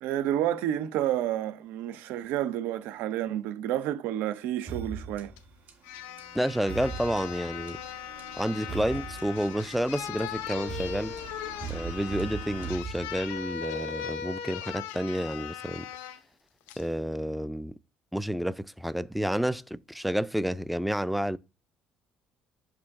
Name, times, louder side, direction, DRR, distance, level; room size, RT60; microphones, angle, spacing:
voice 1, 0.0-5.3, right 12 dB, 85° right, 0.7 m, -30 dB
sound 1, 4.7-13.5, right 6 dB, 55° right, 2.3 m, -41 dB
sound 2, 5.4-5.5 5.8-16.2 16.7-16.9, left 9 dB, 90° left, 0.6 m, -39 dB
voice 2, 6.3-7.8 8.4-11.1 11.7-15.9 16.8-17.8 18.1-21.4, equal, ahead, 0.3 m, -30 dB
6.4 x 5.0 x 3.6 m
cardioid pair, 90°, 3 cm